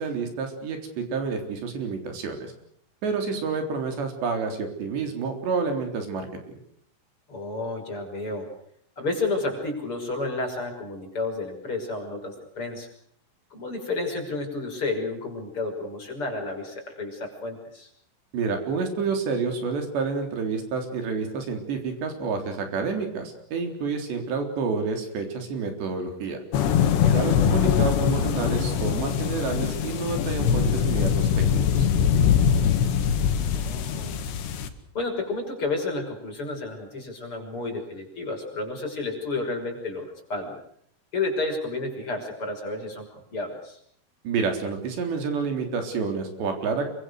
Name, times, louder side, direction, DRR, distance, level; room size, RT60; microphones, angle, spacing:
voice 1, 0.0-2.5 3.0-6.3 18.3-26.4 27.1-31.9 44.2-46.9, right 4 dB, 80° right, 5 dB, 5.9 m, -29 dB
voice 2, 7.3-8.5 9.0-12.9 13.5-17.9 27.0-27.4 33.2-34.2 34.9-40.6 41.1-43.8, left 3 dB, 30° left, 3 dB, 6.5 m, -31 dB
sound 1, 26.5-34.7, left 8 dB, 80° left, 4.1 m, -22 dB
27.5 x 24.0 x 6.6 m, 0.67 s
omnidirectional pair, 5.0 m